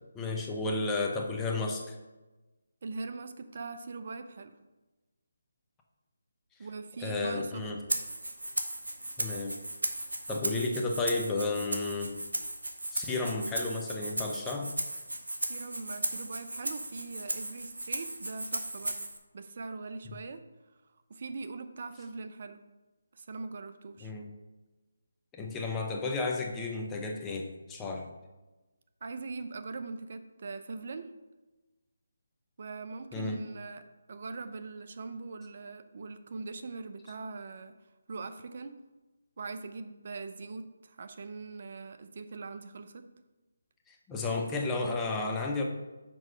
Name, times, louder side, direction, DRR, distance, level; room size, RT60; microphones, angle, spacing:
voice 1, 0.1-1.9 7.0-7.8 9.2-9.6 10.3-12.1 12.9-14.7 24.0-24.3 25.3-28.1 33.1-33.4 43.9-45.6, left 3 dB, 10° left, 1 dB, 0.9 m, -32 dB
voice 2, 2.8-4.5 6.6-7.7 15.5-19.0 19.3-20.4 21.1-22.6 23.1-24.1 29.0-31.1 32.6-37.7 38.1-38.8 39.4-43.1, right 3 dB, 50° right, 9 dB, 0.6 m, -41 dB
Rattle (instrument), 7.9-19.2, right 1 dB, 80° right, 0.9 m, -36 dB
6.2 x 4.7 x 5.4 m, 1.1 s
figure-of-eight pair, 150°, 0 cm